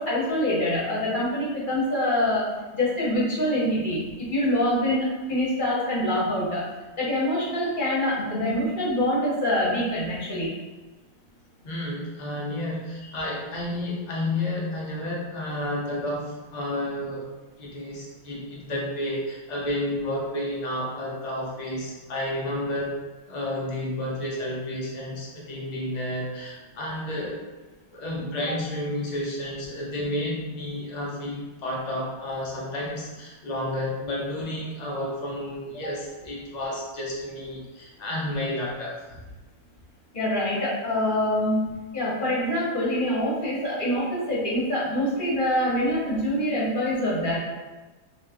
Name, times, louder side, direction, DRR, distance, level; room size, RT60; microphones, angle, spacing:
voice 1, 0.0-2.5 2.7-4.0 4.3-6.6 7.0-10.5 40.1-41.7 41.9-47.4, left 1 dB, 35° left, -6 dB, 1.1 m, -25 dB
voice 2, 11.6-17.3 17.6-23.0 23.3-27.4 27.9-39.2, left 1 dB, 75° left, -4 dB, 0.3 m, -31 dB
3.2 x 2.9 x 3.4 m, 1.2 s
omnidirectional pair, 1.7 m